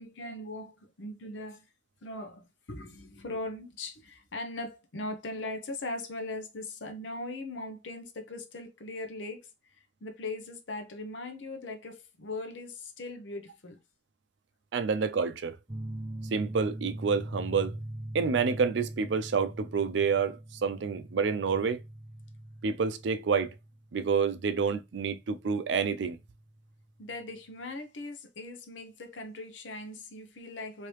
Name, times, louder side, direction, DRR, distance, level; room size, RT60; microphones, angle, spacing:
voice 1, 0.0-1.7 2.0-13.8 27.0-30.9, left 2 dB, 85° left, 0.7 m, -40 dB
voice 2, 14.7-15.6 16.3-17.7 18.1-21.8 22.6-23.5 23.9-26.2, right 5 dB, 70° right, 0.4 m, -28 dB
sound 1, 15.7-26.9, right 1 dB, 20° right, 0.6 m, -42 dB
3.2 x 2.8 x 3.1 m
head